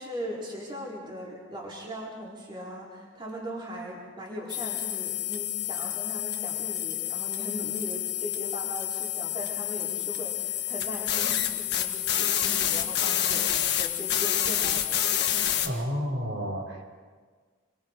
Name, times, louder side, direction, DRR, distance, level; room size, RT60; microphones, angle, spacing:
voice 1, 0.0-15.6, equal, 25° right, -5 dB, 4.8 m, -39 dB
sound 1, 4.5-15.7, left 11 dB, 55° left, 1.7 m, -28 dB
voice 2, 15.6-16.8, equal, 65° right, -2 dB, 5.4 m, -31 dB
29.5 x 23.0 x 5.0 m, 1.5 s
head